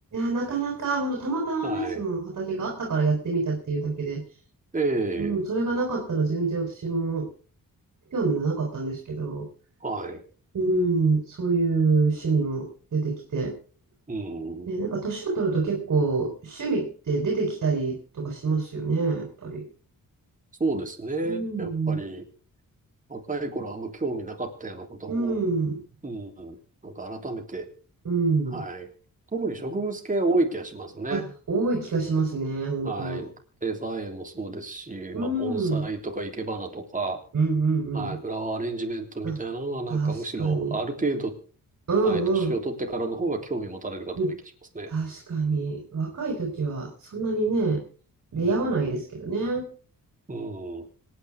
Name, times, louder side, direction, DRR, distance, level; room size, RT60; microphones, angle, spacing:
voice 1, 0.1-4.2 5.2-7.3 8.1-9.5 10.5-13.6 14.7-19.7 21.2-22.0 25.1-25.8 28.0-28.6 31.1-33.2 35.1-35.9 37.3-38.2 39.2-39.4 39.9-40.8 41.9-42.5 44.2-44.3 44.9-47.8 48.3-49.7, right 3 dB, 55° right, 0 dB, 4.6 m, -26 dB
voice 2, 1.6-2.0 4.7-5.4 9.8-10.2 14.1-14.7 20.6-22.2 23.1-25.4 26.0-26.6 26.8-27.7 28.5-28.9 29.3-31.2 32.8-33.3 33.6-37.2 37.9-41.3 42.0-44.4 44.7-44.9 48.3-48.7 50.3-50.8, right 2 dB, 25° right, 3 dB, 3.4 m, -31 dB
26.0 x 9.8 x 3.6 m, 0.40 s
wide cardioid pair, 110°, 35 cm